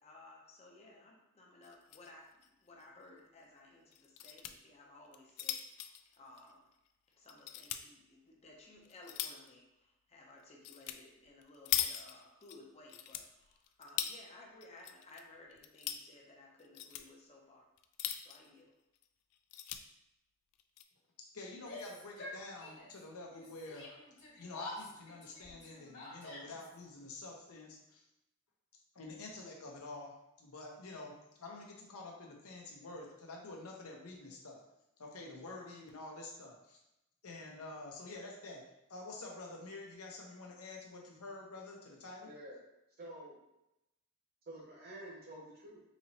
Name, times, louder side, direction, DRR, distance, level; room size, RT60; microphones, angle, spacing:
voice 1, 0.0-6.7 7.1-17.7 18.2-18.7, left 2 dB, 30° left, -1 dB, 0.6 m, -58 dB
sound 1, 1.6-2.1 2.4-2.5 2.8-2.9 3.9-4.5 5.0-6.9 7.3-7.8 8.5-9.5 10.6-11.0 11.3-12.6 12.9-14.2 14.6-15.2 15.5-16.0 16.6-17.1 17.8-18.5 19.0-19.1 19.3-19.8 20.5-20.8, left 11 dB, 90° left, 0.3 m, -40 dB
voice 2, 21.2-23.9 24.4-28.0 28.9-30.1 30.4-34.6 35.0-36.8 37.2-38.6 38.9-42.3, left 2 dB, 75° left, 0 dB, 0.7 m, -48 dB
Yell, 21.6-23.0 23.3-26.8, left 2 dB, 55° left, 1.4 m, -48 dB
voice 3, 42.2-42.6 43.0-43.4 44.5-45.8, right 1 dB, 45° right, -3 dB, 1.1 m, -49 dB
4.0 x 2.9 x 2.8 m, 0.88 s
head